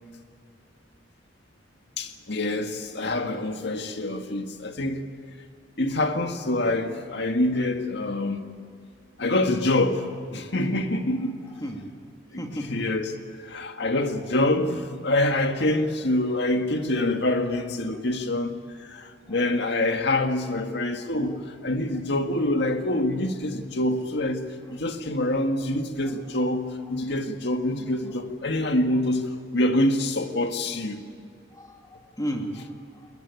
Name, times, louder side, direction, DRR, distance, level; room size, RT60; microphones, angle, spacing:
voice 1, 2.0-5.0 5.8-8.4 9.2-11.3 12.3-12.4 12.7-13.1 13.4-24.4 24.7-31.0, left 1 dB, 65° left, 1.9 m, -26 dB
voice 2, 11.4-11.9 12.3-12.8 17.9-18.0 19.3-19.8 21.3-21.4 26.0-26.5 28.1-28.2 31.5-33.1, equal, 20° left, 2.5 m, -36 dB
21.5 x 21.5 x 9.5 m
head